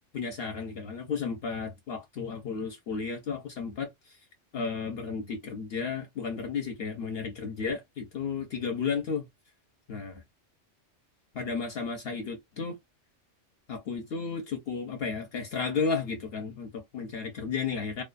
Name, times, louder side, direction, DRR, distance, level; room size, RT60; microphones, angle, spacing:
voice 1, 0.1-4.2 4.5-9.3 9.9-10.2 11.3-12.8 13.7-18.0, left 5 dB, 60° left, 0.9 m, -33 dB
2.5 x 2.3 x 2.3 m
omnidirectional pair, 1.3 m